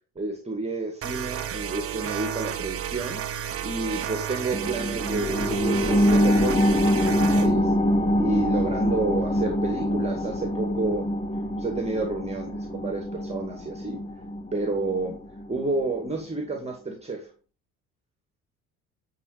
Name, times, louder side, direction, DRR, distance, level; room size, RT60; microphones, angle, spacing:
voice 1, 0.2-3.2 3.6-7.7 8.1-11.1 11.6-14.0 14.5-15.2 15.5-17.3, right 3 dB, 15° right, 2 dB, 2.0 m, -30 dB
sound 1, 1.0-7.5, right 9 dB, 35° right, 1.0 m, -32 dB
sound 2, 4.5-15.6 16.0-16.1, equal, 15° left, 1.3 m, -25 dB
9.8 x 3.7 x 5.0 m, 0.36 s
figure-of-eight pair, 55°, 39 cm